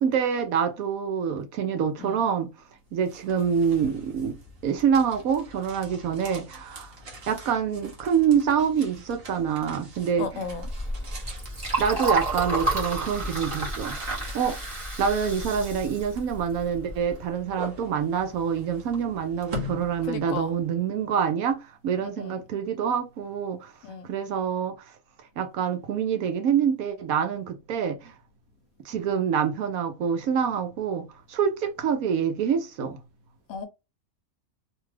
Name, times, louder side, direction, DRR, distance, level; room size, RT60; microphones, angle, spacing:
voice 1, 0.0-2.5 2.9-4.4 4.6-6.9 7.3-10.4 11.8-14.6 15.0-23.7 24.1-24.8 25.4-28.1 28.8-33.0, right 7 dB, 75° right, 1.1 m, -26 dB
sound 1, 2.8-20.8, equal, 45° right, 1.0 m, -43 dB
voice 2, 10.2-11.8 20.0-20.5 22.0-22.4 23.8-24.1 33.5-33.7, left 5 dB, 70° left, 0.9 m, -37 dB
Liquid, 10.4-17.1, right 2 dB, 25° right, 1.0 m, -31 dB
2.9 x 2.3 x 3.1 m
omnidirectional pair, 1.5 m